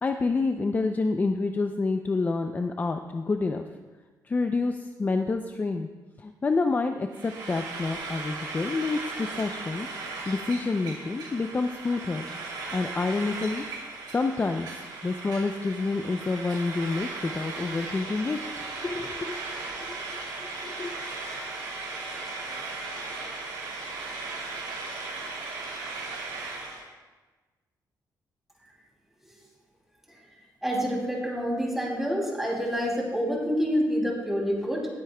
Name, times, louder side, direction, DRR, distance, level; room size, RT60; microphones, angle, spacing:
voice 1, 0.0-3.6 4.2-5.9 6.2-9.9 10.3-12.3 12.7-13.6 14.1-14.7 15.0-19.4 19.8-20.0 20.4-21.0, left 3 dB, 25° left, 6 dB, 0.4 m, -28 dB
Frying (food), 7.1-26.8, right 3 dB, 85° right, 2.8 m, -37 dB
voice 2, 30.6-34.9, equal, 5° right, -2 dB, 2.7 m, -27 dB
19.0 x 8.4 x 2.2 m, 1.3 s
cardioid pair, 110°, 7 cm